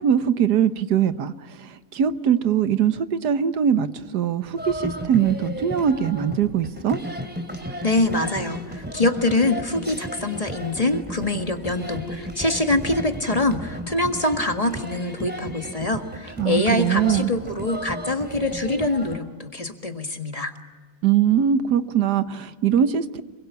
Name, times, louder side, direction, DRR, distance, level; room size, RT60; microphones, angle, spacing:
voice 1, 0.0-7.0 16.4-17.3 21.0-23.2, right 8 dB, 85° right, 12 dB, 1.6 m, -22 dB
sound 1, 4.6-19.2, equal, 5° right, 3.1 m, -34 dB
voice 2, 7.8-20.5, left 2 dB, 25° left, 6 dB, 1.7 m, -24 dB
26.5 x 23.5 x 9.5 m, 1.5 s
omnidirectional pair, 1.7 m